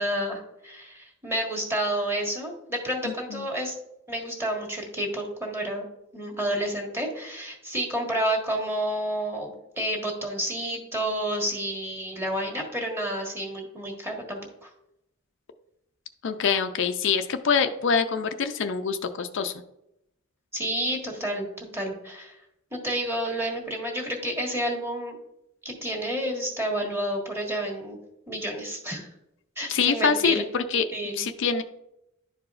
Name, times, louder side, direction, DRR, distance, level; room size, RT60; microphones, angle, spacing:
voice 1, 0.0-3.8 4.1-5.8 6.1-9.5 9.8-14.7 20.5-22.4 22.7-25.2 25.7-28.0 28.3-29.1 29.6-30.5 30.9-31.2, right 1 dB, 10° right, 1 dB, 1.6 m, -30 dB
voice 2, 3.0-3.5 16.2-19.5 29.7-30.9 31.1-31.6, left 6 dB, 65° left, 8 dB, 0.5 m, -25 dB
11.5 x 4.8 x 2.5 m, 0.84 s
head